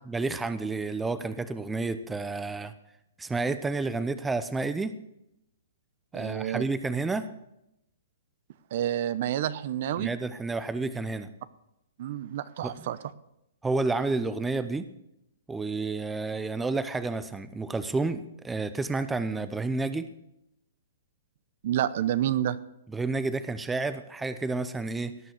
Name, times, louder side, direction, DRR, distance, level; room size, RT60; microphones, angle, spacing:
voice 1, 0.1-2.7 3.2-4.9 6.1-7.3 10.0-11.3 12.6-12.9 13.6-14.9 15.5-20.1 22.9-25.2, right 3 dB, 10° right, 13 dB, 0.7 m, -30 dB
voice 2, 6.1-6.6 8.7-10.1 12.0-13.0 21.6-22.6, right 11 dB, 55° right, 16 dB, 0.8 m, -29 dB
18.0 x 6.1 x 8.0 m, 0.85 s
hypercardioid pair, 130°, 0 cm